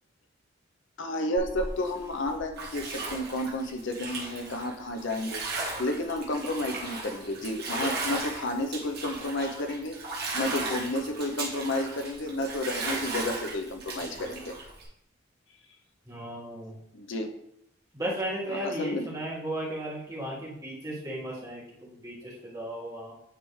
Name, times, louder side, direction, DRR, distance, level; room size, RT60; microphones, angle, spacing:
voice 1, 1.0-5.4 5.8-10.0 10.3-14.6 16.9-17.3 18.5-19.1, left 1 dB, 65° left, 4 dB, 0.7 m, -31 dB
Bathtub (filling or washing), 1.4-14.8, right 3 dB, 50° right, 1.5 m, -36 dB
voice 2, 16.1-16.7 17.9-23.1, right 1 dB, 20° right, -6 dB, 1.7 m, -35 dB
9.4 x 3.3 x 3.1 m, 0.73 s
head